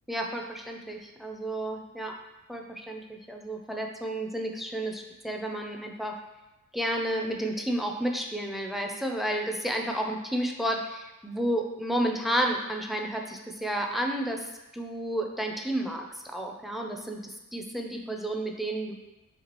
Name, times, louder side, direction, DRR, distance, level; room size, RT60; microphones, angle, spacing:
voice 1, 0.1-2.2 2.5-6.2 6.7-18.9, right 1 dB, ahead, 2 dB, 0.4 m, -31 dB
5.9 x 2.3 x 3.0 m, 1.0 s
wide cardioid pair, 100°, 33 cm